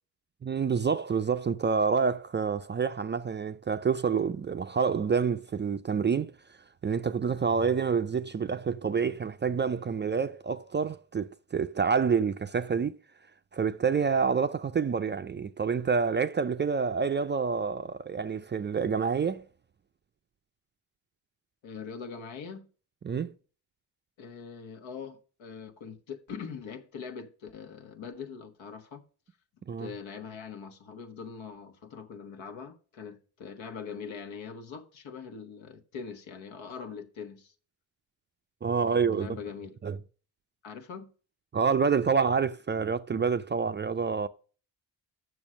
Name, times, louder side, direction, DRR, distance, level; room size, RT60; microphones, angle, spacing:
voice 1, 0.4-6.3 6.8-12.9 13.5-19.5 23.0-23.3 29.7-29.9 38.6-39.3 39.8-40.0 41.5-44.3, right 5 dB, 25° right, 0.3 m, -28 dB
voice 2, 21.6-22.7 24.2-29.0 29.8-37.5 38.9-39.8 40.6-41.1, left 6 dB, 80° left, 1.3 m, -42 dB
7.1 x 6.3 x 6.2 m
cardioid pair, 85°, 45 cm